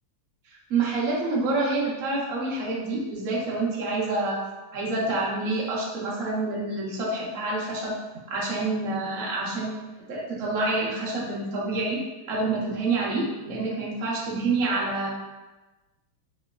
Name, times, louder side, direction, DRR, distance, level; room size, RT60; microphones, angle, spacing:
voice 1, 0.7-4.4 4.7-7.9 8.3-9.8 10.1-12.0 12.3-15.1, right 3 dB, 70° right, -5 dB, 0.7 m, -27 dB
3.2 x 3.1 x 2.2 m, 1.1 s
omnidirectional pair, 2.3 m